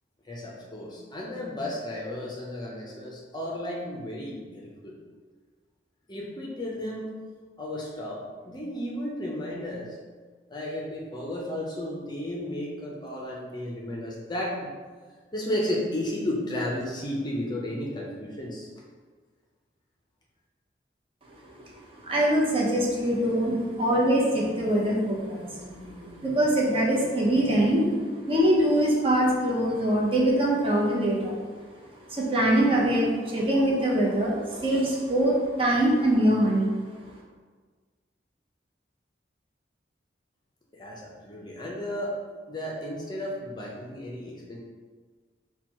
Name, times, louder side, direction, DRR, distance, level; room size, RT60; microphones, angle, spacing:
voice 1, 0.3-4.9 6.1-7.1 7.6-10.0 10.5-14.7 15.3-18.7 40.7-42.1 42.5-44.6, left 1 dB, 25° left, -2 dB, 0.6 m, -33 dB
voice 2, 22.0-31.4 32.1-36.7, right 1 dB, 30° right, -3 dB, 0.8 m, -23 dB
4.3 x 2.3 x 4.4 m, 1.5 s
head